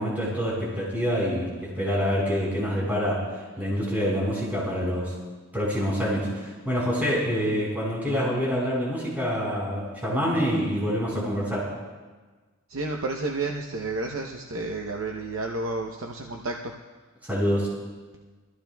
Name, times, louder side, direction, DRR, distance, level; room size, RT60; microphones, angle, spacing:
voice 1, 0.0-5.1 5.5-11.7 17.2-17.7, equal, 10° right, -6 dB, 4.2 m, -26 dB
voice 2, 12.7-16.7, right 2 dB, 70° right, 1 dB, 0.8 m, -31 dB
23.0 x 14.5 x 2.3 m, 1.3 s
head